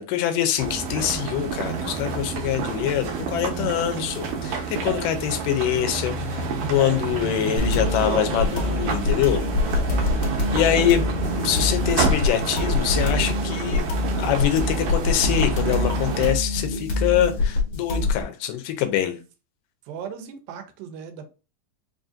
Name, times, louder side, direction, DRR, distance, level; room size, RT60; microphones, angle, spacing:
voice 1, 0.0-9.8 10.5-11.0 11.4-13.9 14.2-19.2, left 11 dB, 80° left, 2.2 m, -24 dB
sound 1, 0.6-16.3, right 5 dB, 70° right, 2.1 m, -29 dB
voice 2, 7.2-7.7 10.1-10.6 19.9-21.3, right 6 dB, 85° right, 2.5 m, -38 dB
sound 2, 7.6-18.2, left 2 dB, 60° left, 1.6 m, -25 dB
5.4 x 2.6 x 2.5 m
omnidirectional pair, 4.1 m